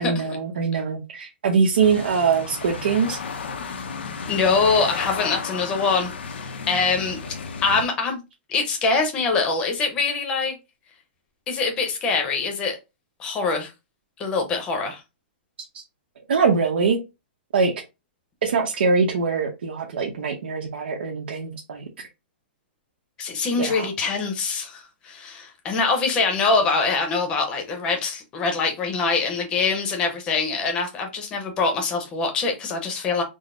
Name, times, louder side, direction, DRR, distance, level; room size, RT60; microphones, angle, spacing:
voice 1, 0.0-3.2 15.7-15.8 16.3-17.0 17.5-17.7 18.4-21.9 23.6-23.8, right 5 dB, 85° right, 0.8 m, -23 dB
sound 1, 1.8-7.8, left 5 dB, 90° left, 0.6 m, -33 dB
voice 2, 4.3-7.2 7.6-8.2 8.5-10.6 11.5-12.8 13.2-13.7 14.2-15.0 23.2-33.2, left 4 dB, 15° left, 0.7 m, -24 dB
3.9 x 2.0 x 3.6 m
hypercardioid pair, 170°, 6 cm